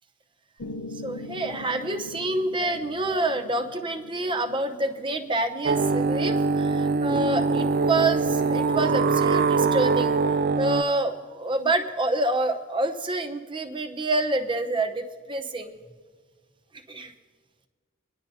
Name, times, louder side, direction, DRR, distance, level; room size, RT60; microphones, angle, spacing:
Piano, 0.6-8.7, left 2 dB, 85° left, 0.9 m, -43 dB
voice 1, 1.0-10.2 10.6-15.7 16.9-17.1, right 2 dB, 25° right, 7 dB, 0.8 m, -27 dB
sound 1, 5.6-10.8, right 4 dB, 45° right, 0.3 m, -23 dB
24.0 x 10.5 x 2.8 m, 1.5 s
head